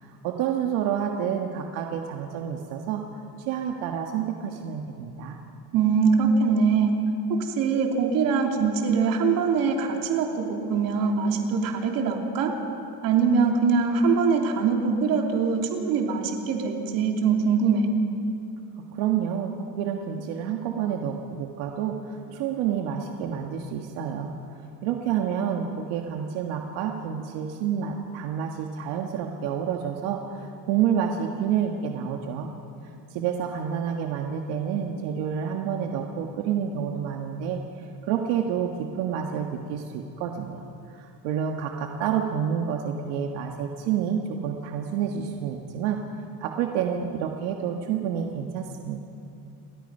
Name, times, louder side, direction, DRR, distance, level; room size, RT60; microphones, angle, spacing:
voice 1, 0.0-3.0 3.5-5.4 18.9-24.3 24.8-32.5 33.1-37.6 38.1-46.0 46.4-49.0, right 8 dB, 80° right, 2 dB, 1.7 m, -29 dB
voice 2, 5.7-6.9 7.4-12.5 13.0-17.9, right 5 dB, 55° right, 2 dB, 3.0 m, -23 dB
29.5 x 22.0 x 5.6 m, 2.7 s
cardioid pair, 165°, 41 cm